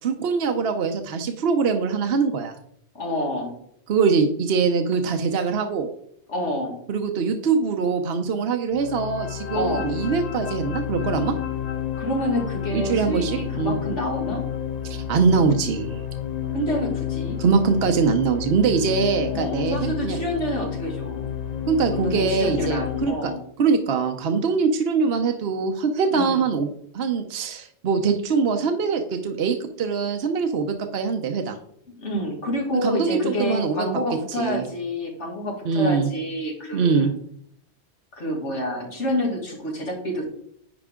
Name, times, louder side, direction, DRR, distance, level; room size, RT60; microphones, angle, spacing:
voice 1, 0.0-2.6 3.9-5.9 6.9-11.3 12.7-13.8 14.8-16.0 17.4-20.2 21.7-23.3 23.6-31.6 32.8-33.9 34.4-34.7 35.6-36.1 36.7-37.1, right 5 dB, 65° right, 5 dB, 0.9 m, -23 dB
voice 2, 2.9-3.6 6.3-6.8 9.5-9.9 12.0-14.4 16.5-17.4 19.3-21.3 21.9-23.4 26.1-26.4 32.0-37.1 38.1-40.2, left 1 dB, 90° left, -1 dB, 2.4 m, -28 dB
sound 1, 8.7-23.1, left 9 dB, 45° left, 0.6 m, -30 dB
10.0 x 4.7 x 3.6 m, 0.69 s
omnidirectional pair, 1.2 m